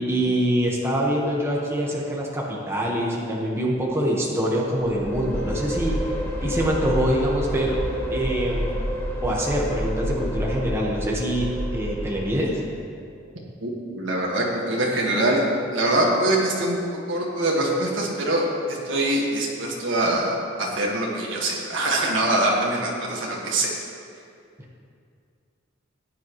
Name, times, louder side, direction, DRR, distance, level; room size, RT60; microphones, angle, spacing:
voice 1, 0.0-6.0 6.4-7.8 8.1-8.7 9.2-12.6, equal, 15° right, -3 dB, 1.3 m, -24 dB
sound 1, 4.8-12.6, equal, 10° left, 1.4 m, -29 dB
voice 2, 13.6-15.4 15.7-16.8 17.1-23.7, right 1 dB, 70° right, -3 dB, 1.7 m, -23 dB
15.0 x 9.1 x 3.1 m, 2.4 s
head